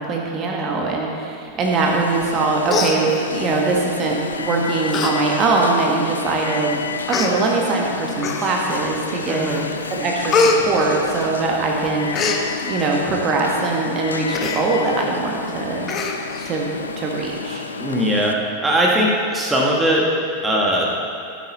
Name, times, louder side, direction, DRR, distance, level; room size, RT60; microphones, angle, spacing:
voice 1, 0.0-6.8 7.1-9.5 9.9-12.4 12.7-15.9 16.5-16.7 17.0-17.6, right 3 dB, 30° right, -1 dB, 1.5 m, -22 dB
Alarm, 1.6-18.3, left 5 dB, 75° left, 0.5 m, -30 dB
Human voice, 2.2-2.4 2.7-3.6 4.3-4.5 4.9-5.1 5.5-5.6 6.4-6.5 7.1-7.3 8.2-8.7 9.2-9.6 9.9-11.6 11.8-12.4 14.3-14.6 15.0-15.1 15.4-15.5 15.9-16.5 16.9-17.0, left 3 dB, 25° left, 1.0 m, -23 dB
voice 2, 9.3-9.7 17.8-18.3 18.6-20.1 20.4-20.9, equal, 10° right, -2 dB, 1.5 m, -19 dB
14.5 x 8.4 x 4.1 m, 2.5 s
figure-of-eight pair, 90°, 0 cm